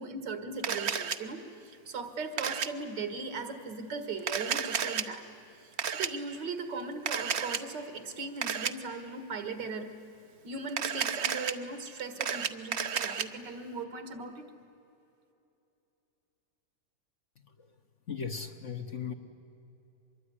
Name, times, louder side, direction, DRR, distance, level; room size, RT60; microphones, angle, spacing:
voice 1, 0.0-5.3 5.9-9.9 10.4-14.5, right 3 dB, 75° right, 8 dB, 2.3 m, -38 dB
Camera, 0.6-1.2 2.4-2.7 4.2-5.0 5.8-6.1 7.1-7.6 8.4-8.7 10.7-11.5 12.0-13.2, right 7 dB, 50° right, 0.9 m, -31 dB
voice 2, 18.1-19.1, left 6 dB, 50° left, 6 dB, 1.2 m, -38 dB
24.0 x 22.5 x 9.9 m, 2.9 s
omnidirectional pair, 2.0 m